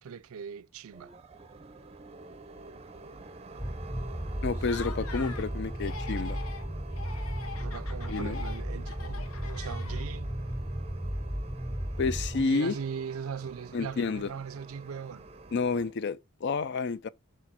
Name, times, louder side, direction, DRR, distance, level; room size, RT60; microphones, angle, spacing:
voice 1, 0.0-1.1 7.5-10.4 12.3-15.3, right 6 dB, 75° right, 0.4 m, -40 dB
sound 1, 0.9-15.9, right 3 dB, 30° right, 0.5 m, -48 dB
sound 2, 3.6-12.4, equal, 5° left, 0.7 m, -35 dB
voice 2, 4.4-6.4 8.1-8.4 12.0-12.8 13.7-14.3 15.5-17.1, left 4 dB, 50° left, 0.4 m, -30 dB
Laughter, 4.6-5.5 5.8-6.7 7.0-10.3, left 5 dB, 70° left, 0.8 m, -44 dB
6.3 x 4.4 x 4.3 m
head